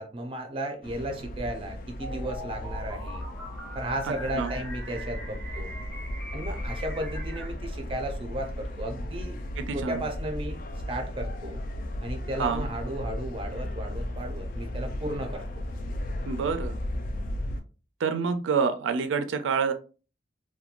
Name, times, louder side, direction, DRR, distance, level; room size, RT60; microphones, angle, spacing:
voice 1, 0.0-3.2 3.8-5.7 6.3-9.4 9.7-10.6 10.9-11.6 12.0-15.4, right 1 dB, 30° right, 4 dB, 0.4 m, -34 dB
sound 1, 0.8-17.6, left 1 dB, 45° left, 0.3 m, -35 dB
sound 2, 2.0-7.5, equal, 5° left, 0.7 m, -40 dB
voice 2, 4.0-4.5 9.6-10.1 12.4-12.7 16.3-16.8 18.0-19.7, right 5 dB, 90° right, 9 dB, 0.4 m, -28 dB
2.9 x 2.2 x 2.4 m, 0.35 s
head